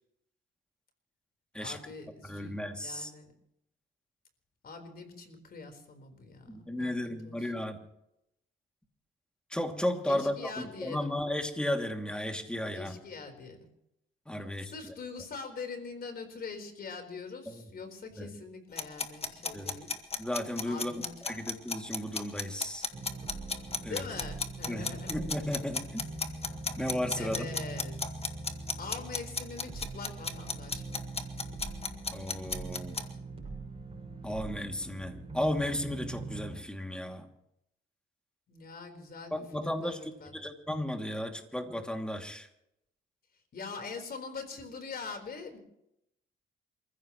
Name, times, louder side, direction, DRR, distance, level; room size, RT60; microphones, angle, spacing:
voice 1, 1.6-3.3 4.6-7.5 10.0-11.1 12.7-13.7 14.6-19.9 20.7-21.4 23.9-25.2 27.2-28.0 28.8-31.0 38.5-40.3 43.5-45.6, left 4 dB, 50° left, 6 dB, 4.3 m, -43 dB
voice 2, 2.2-3.1 6.5-7.8 9.5-12.9 14.3-14.9 17.5-17.6 18.2-18.3 19.5-19.7 20.2-20.9 21.2-22.9 23.8-24.0 24.7-26.1 26.8-27.5 32.1-33.0 34.2-37.3 39.3-42.5, left 1 dB, 5° left, 3 dB, 2.6 m, -34 dB
sound 1, 18.8-33.1, left 4 dB, 30° left, 1.7 m, -34 dB
sound 2, 22.9-36.6, right 3 dB, 30° right, 6.0 m, -42 dB
28.5 x 15.5 x 3.1 m, 0.81 s
cardioid pair, 90°, 20 cm